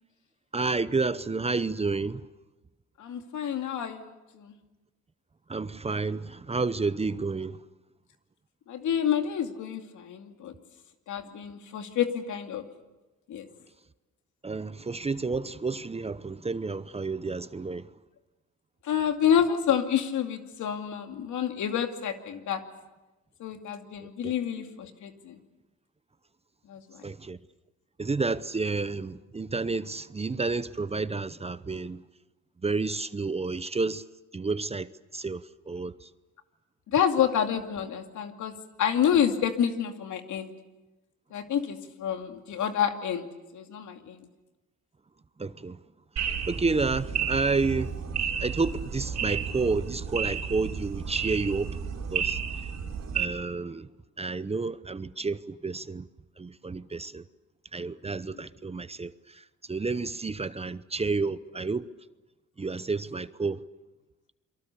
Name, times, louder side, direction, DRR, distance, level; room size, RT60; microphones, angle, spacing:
voice 1, 0.5-2.2 5.5-7.6 14.4-17.9 24.0-24.1 27.0-27.4 28.0-32.0 32.6-34.0 34.3-36.1 45.4-45.8 46.5-47.9 48.4-51.8 52.1-52.4 53.1-53.9 54.2-56.0 56.4-57.2 57.7-59.4 59.7-61.8 62.6-63.6, right 3 dB, 20° right, 0.8 m, -30 dB
voice 2, 3.0-4.5 8.7-10.5 11.1-12.6 13.3-13.5 18.8-22.6 23.4-25.4 26.7-27.0 36.9-40.5 41.3-43.3 43.5-44.3 58.3-58.4, left 8 dB, 75° left, 2.5 m, -28 dB
sound 1, 46.2-53.2, right 7 dB, 60° right, 3.7 m, -32 dB
28.5 x 23.5 x 7.0 m
cardioid pair, 90°, 30 cm